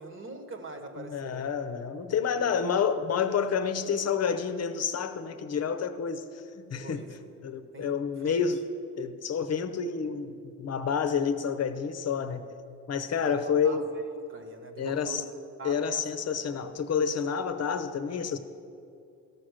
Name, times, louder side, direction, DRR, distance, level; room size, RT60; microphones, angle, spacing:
voice 1, 0.0-1.4 2.1-2.5 6.8-7.1 7.7-7.9 8.2-8.4 13.1-13.8 14.3-15.2 15.6-16.0 16.4-16.5, right 3 dB, 40° right, 1.3 m, -42 dB
voice 2, 1.0-7.1 7.4-8.6 9.0-12.5 12.9-13.8 14.8-15.2 15.6-18.4, left 6 dB, 50° left, 0.8 m, -29 dB
13.5 x 6.2 x 6.4 m
cardioid pair, 85°, 33 cm